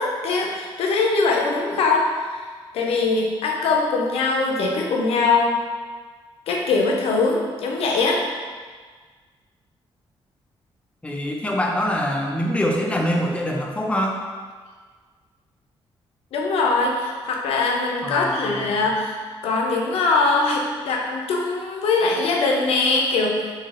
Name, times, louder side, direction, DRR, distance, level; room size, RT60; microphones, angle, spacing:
voice 1, 0.0-2.5 2.7-5.6 6.5-8.2 16.3-19.2 19.4-23.5, left 3 dB, 80° left, 0 dB, 0.5 m, -22 dB
voice 2, 11.0-14.2 18.0-18.9, equal, 10° left, 0 dB, 0.4 m, -24 dB
3.1 x 2.7 x 2.5 m, 1.5 s
cardioid pair, 90°, 10 cm